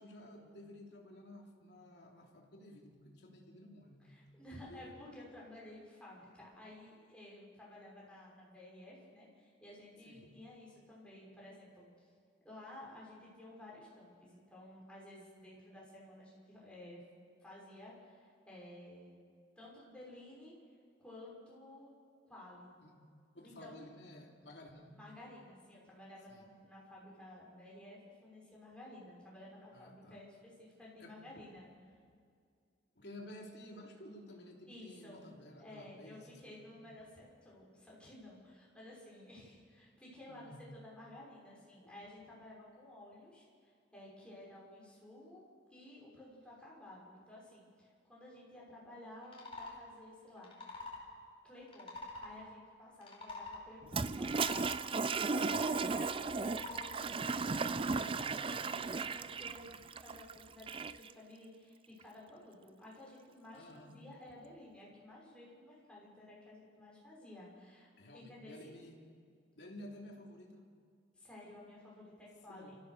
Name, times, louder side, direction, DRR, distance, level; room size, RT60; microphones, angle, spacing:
voice 1, 0.0-4.1 4.7-4.9 10.0-10.3 22.8-23.0 23.3-25.0 26.3-26.5 29.7-30.2 31.0-31.4 32.9-36.7 40.3-40.6 57.8-58.2 63.5-64.0 67.9-69.0 69.6-70.6 72.5-72.7, left 1 dB, 65° left, 0 dB, 3.3 m, -53 dB
voice 2, 4.0-12.1 12.4-17.0 17.4-19.2 19.6-20.6 21.0-21.9 22.2-22.7 23.4-23.8 25.0-31.7 34.7-35.3 35.6-50.5 51.4-58.0 58.3-68.8 71.1-72.8, left 1 dB, 5° left, -5 dB, 6.2 m, -54 dB
sound 1, 49.2-49.8 50.4-51.0 51.7-52.3 52.9-53.6 54.3-54.7 55.3-55.8 56.4-56.9, left 2 dB, 30° left, 4.3 m, -46 dB
Toilet flush, 53.9-61.1, right 4 dB, 30° right, 0.5 m, -35 dB
28.5 x 15.0 x 6.8 m, 2.2 s
head